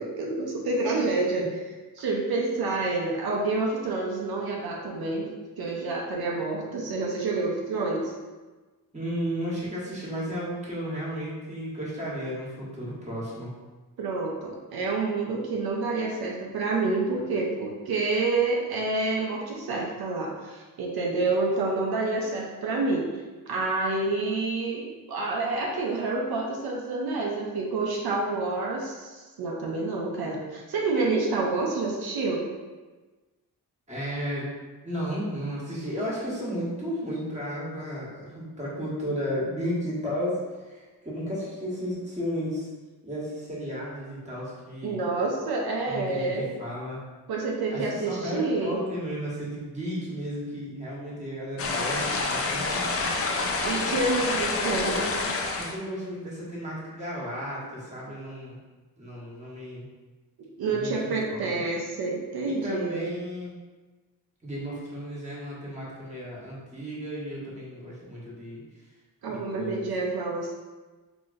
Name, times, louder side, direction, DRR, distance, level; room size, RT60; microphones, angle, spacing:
voice 1, 0.0-1.6 2.0-5.3 5.6-8.1 14.0-23.1 23.5-32.4 44.8-46.4 47.3-48.8 53.6-55.0 60.4-63.1 69.2-70.5, right 3 dB, 85° right, -1 dB, 0.6 m, -28 dB
voice 2, 8.9-13.5 33.9-34.5 34.8-42.7 43.0-45.0 45.9-47.0 47.7-53.5 54.1-55.1 55.6-58.6 59.0-59.9 60.6-61.6 62.4-63.6 64.4-68.6 69.2-69.9, equal, 20° right, -6 dB, 1.2 m, -34 dB
sound 1, 51.6-55.8, left 3 dB, 40° left, 0.4 m, -28 dB
4.0 x 2.9 x 2.5 m, 1.3 s
wide cardioid pair, 95°, 37 cm